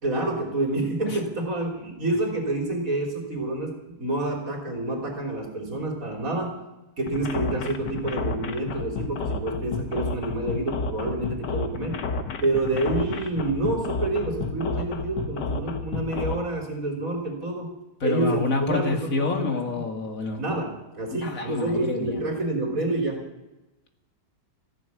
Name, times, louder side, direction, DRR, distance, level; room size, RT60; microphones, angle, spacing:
voice 1, 0.0-6.6 7.0-12.0 12.4-17.7 18.0-19.1 19.4-19.5 20.4-23.3, right 2 dB, 55° right, 0 dB, 3.7 m, -28 dB
sound 1, 7.1-16.4, left 4 dB, 90° left, 1.8 m, -31 dB
voice 2, 18.0-20.4 21.1-22.2, left 3 dB, 55° left, 3 dB, 2.4 m, -28 dB
15.0 x 10.5 x 8.6 m, 1.0 s
omnidirectional pair, 1.8 m